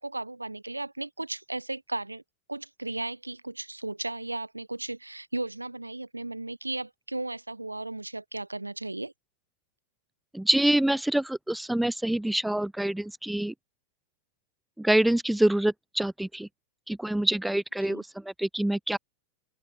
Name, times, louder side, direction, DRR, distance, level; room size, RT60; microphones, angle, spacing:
voice 1, 0.0-2.2 2.5-9.1 17.9-18.0, right 2 dB, 85° right, 0.7 m, -35 dB
voice 2, 10.3-13.5 14.8-16.5 16.9-19.0, right 1 dB, 5° right, 0.4 m, -26 dB
open air
figure-of-eight pair, 90°, 0 cm